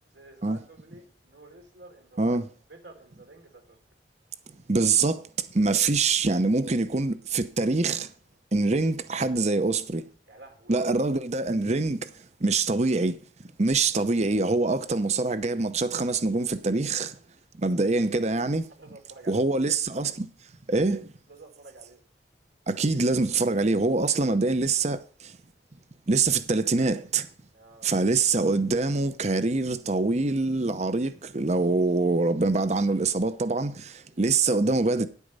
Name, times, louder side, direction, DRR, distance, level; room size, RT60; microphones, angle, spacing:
voice 1, 0.1-2.4 2.7-3.8 10.2-10.8 17.9-18.0 18.8-19.4 21.3-22.0 27.5-28.1 34.0-34.2, right 2 dB, 80° right, 3.4 m, -50 dB
voice 2, 4.7-8.1 8.5-10.0 10.7-12.1 12.4-13.2 13.6-17.2 17.5-18.6 19.3-20.3 20.7-21.1 22.7-25.3 26.1-27.3 27.8-35.1, right 3 dB, 40° right, 0.8 m, -24 dB
10.0 x 8.3 x 5.4 m
head